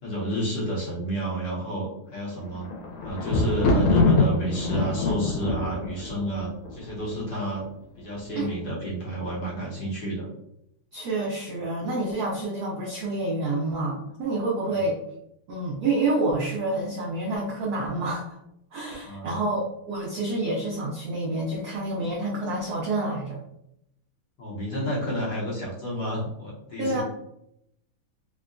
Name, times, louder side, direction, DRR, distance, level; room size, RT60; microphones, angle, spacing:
voice 1, 0.0-2.7 3.0-7.6 8.0-10.3 14.6-14.8 19.0-19.4 24.4-27.0, right 1 dB, 60° left, -6 dB, 1.3 m, -30 dB
Thunder, 2.3-7.4 8.1-8.7 8.9-9.0, left 2 dB, 90° left, 1.6 m, -24 dB
voice 2, 10.9-15.0 15.5-18.4 18.7-23.4 26.8-27.0, right 2 dB, 85° right, -4 dB, 0.8 m, -28 dB
3.7 x 2.2 x 2.4 m, 0.79 s
omnidirectional pair, 2.4 m